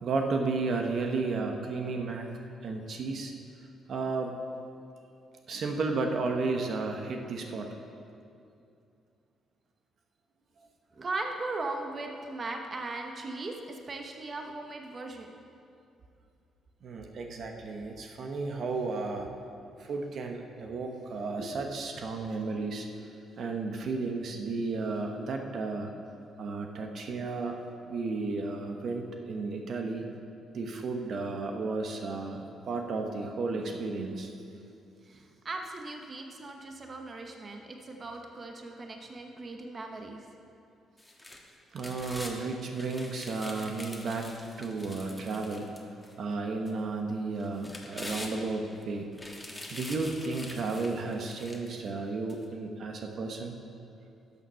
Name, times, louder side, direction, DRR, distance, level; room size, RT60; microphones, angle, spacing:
voice 1, 0.0-2.3 2.6-3.3 3.9-4.4 5.5-7.7 16.8-19.3 19.8-23.1 23.4-25.9 26.4-27.6 27.8-30.0 30.5-34.3 41.7-45.7 46.2-49.1 49.7-53.5, right 3 dB, 60° right, 3 dB, 1.0 m, -33 dB
voice 2, 10.9-15.3 35.1-40.3, right 2 dB, 35° right, 3 dB, 1.0 m, -38 dB
sound 1, 41.0-42.4 42.7-46.1 46.7-46.8 47.4-48.7 49.1-51.8 52.3-52.4, left 1 dB, 10° left, 1.5 m, -44 dB
12.5 x 7.0 x 5.7 m, 2.6 s
cardioid pair, 90°, 0 cm